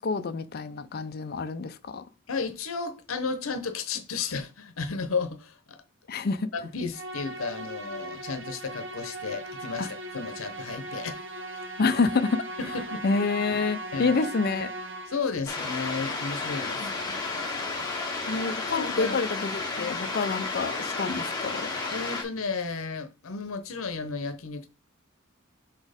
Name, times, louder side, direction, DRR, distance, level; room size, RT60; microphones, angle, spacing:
voice 1, 0.0-2.0 6.1-6.5 9.8-9.9 11.8-12.4 13.0-14.7 16.8-16.9 18.3-21.7, left 4 dB, 50° left, 0.5 m, -28 dB
voice 2, 2.3-5.8 6.5-11.2 11.5-11.7 12.6-13.0 13.9-14.2 15.1-16.9 18.3-19.1 19.8-20.1 21.9-24.7, left 4 dB, 90° left, 0.8 m, -33 dB
Musical instrument, 6.9-15.4, right 2 dB, 70° right, 1.0 m, -38 dB
sound 1, 15.5-22.2, left 3 dB, 20° left, 2.0 m, -32 dB
5.9 x 4.3 x 5.0 m
head